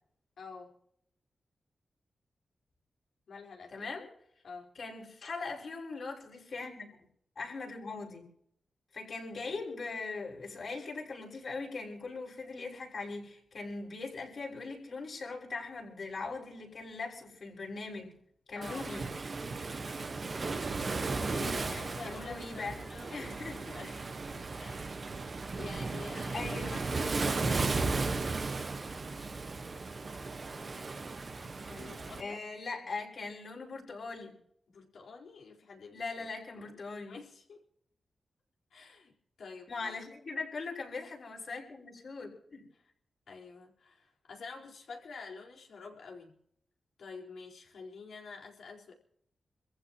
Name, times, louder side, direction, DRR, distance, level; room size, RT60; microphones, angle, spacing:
voice 1, 0.4-0.7 3.3-3.9 4.4-4.7 18.5-18.8 21.3-23.3 23.7-25.0 25.5-27.7 31.7-32.4 34.7-36.7 37.0-37.6 38.7-40.0 42.7-42.8 43.3-46.4 47.0-48.9, left 4 dB, 75° left, -1 dB, 4.5 m, -48 dB
voice 2, 3.7-4.1 4.7-6.9 7.4-8.2 8.9-18.2 18.5-19.1 22.0-22.8 23.1-23.7 26.3-26.8 27.5-27.8 32.2-34.3 35.9-37.2 39.7-42.7, left 3 dB, 55° left, -2 dB, 6.3 m, -40 dB
Waves surf, 18.6-32.2, right 3 dB, 40° right, 1.3 m, -35 dB
27.5 x 15.0 x 3.0 m, 0.70 s
wide cardioid pair, 105°, 0 cm